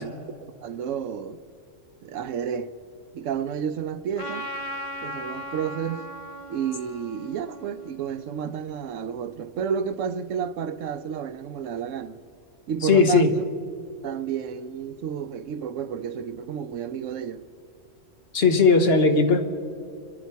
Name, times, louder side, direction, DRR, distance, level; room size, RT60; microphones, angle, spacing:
voice 1, 0.0-1.4 2.0-2.7 3.1-4.5 5.0-6.0 6.5-12.2 12.7-13.5 14.0-17.5, right 8 dB, 85° right, 1.0 m, -31 dB
Trumpet, 4.2-8.8, equal, 30° left, 0.9 m, -38 dB
voice 2, 12.8-13.3 18.3-19.4, left 4 dB, 55° left, 1.3 m, -18 dB
28.5 x 11.0 x 4.6 m
omnidirectional pair, 1.3 m